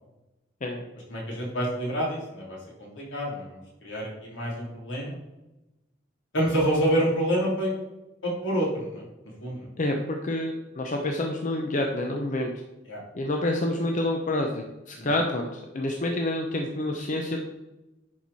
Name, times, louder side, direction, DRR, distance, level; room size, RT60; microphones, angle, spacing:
voice 1, 1.1-5.2 6.3-7.7 8.2-9.0 9.4-9.7 12.9-13.0 15.0-15.1, right 1 dB, 75° left, -4 dB, 3.2 m, -28 dB
voice 2, 9.8-12.5 13.1-17.5, left 1 dB, 45° left, 2 dB, 0.7 m, -28 dB
10.5 x 4.6 x 4.1 m, 0.98 s
head